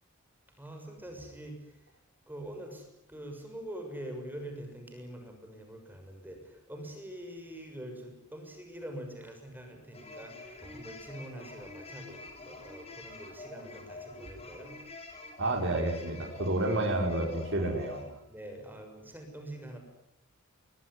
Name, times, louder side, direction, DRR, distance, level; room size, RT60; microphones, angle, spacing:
voice 1, 0.6-1.9 2.3-14.7 18.3-19.8, right 1 dB, 10° right, 4 dB, 6.6 m, -44 dB
sound 1, 9.9-18.1, left 2 dB, 30° left, 6.3 m, -46 dB
voice 2, 15.4-18.0, right 1 dB, 55° right, 1 dB, 5.5 m, -30 dB
26.5 x 22.0 x 9.9 m, 0.76 s
head